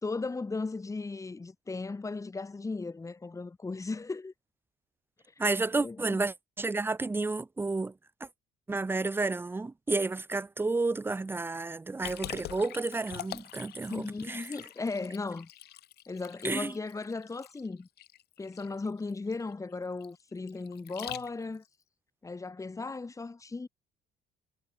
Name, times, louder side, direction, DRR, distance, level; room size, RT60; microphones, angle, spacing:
voice 1, 0.0-4.3 5.7-6.2 13.9-15.5 16.1-17.9 18.4-21.6 22.2-23.7, left 3 dB, 20° left, 3.3 m, -36 dB
voice 2, 5.4-7.9 8.7-14.5 16.4-16.7, right 3 dB, 15° right, 0.7 m, -31 dB
Liquid, 12.0-21.7, left 14 dB, 75° left, 7.6 m, -45 dB
cardioid pair, 110°, 17 cm